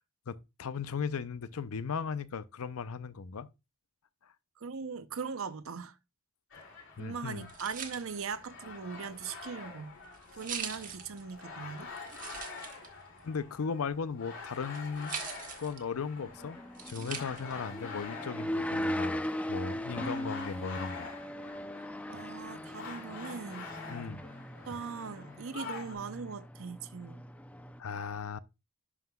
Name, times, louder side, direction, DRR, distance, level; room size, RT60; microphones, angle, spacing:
voice 1, 0.3-3.5 7.0-7.5 13.2-15.3 15.6-16.6 16.8-19.2 19.5-21.1 21.5-21.6 23.9-24.2 27.8-28.4, left 5 dB, 85° left, 0.5 m, -37 dB
voice 2, 4.6-6.0 7.0-9.9 10.3-11.9 22.1-23.7 24.7-27.2, right 5 dB, 70° right, 0.7 m, -40 dB
sound 1, 6.5-26.0, left 4 dB, 65° left, 2.6 m, -47 dB
sound 2, 7.2-17.7, right 7 dB, 40° right, 1.2 m, -45 dB
sound 3, 16.2-27.8, left 1 dB, 5° left, 0.5 m, -39 dB
11.0 x 5.7 x 2.3 m
head